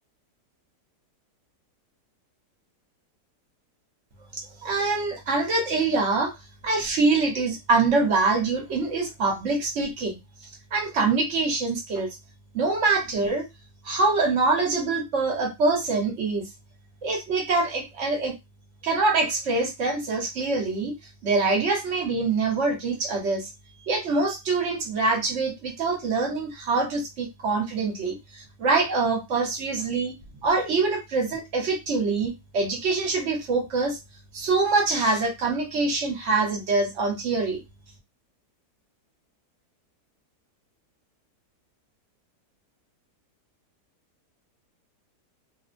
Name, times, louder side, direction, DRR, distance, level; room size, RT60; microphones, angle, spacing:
voice 1, 4.3-6.3 6.6-10.2 10.7-12.1 12.5-13.5 13.8-16.4 17.0-18.4 18.8-20.9 21.2-23.5 23.9-30.2 30.4-34.0 34.3-37.6, right 3 dB, 55° right, 1 dB, 1.0 m, -24 dB
2.9 x 2.0 x 2.5 m, 0.22 s
omnidirectional pair, 1.8 m